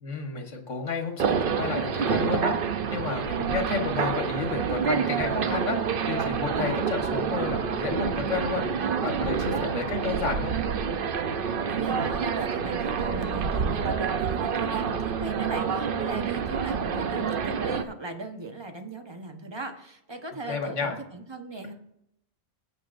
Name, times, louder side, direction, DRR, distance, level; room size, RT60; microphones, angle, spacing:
voice 1, 0.0-2.6 2.9-10.6 20.5-21.0, left 4 dB, 90° left, 3 dB, 1.7 m, -31 dB
sound 1, 1.2-17.8, right 6 dB, 55° right, 0.8 m, -28 dB
voice 2, 11.7-21.7, right 2 dB, 25° right, 5 dB, 1.0 m, -38 dB
16.5 x 8.0 x 2.6 m, 0.76 s
omnidirectional pair, 1.2 m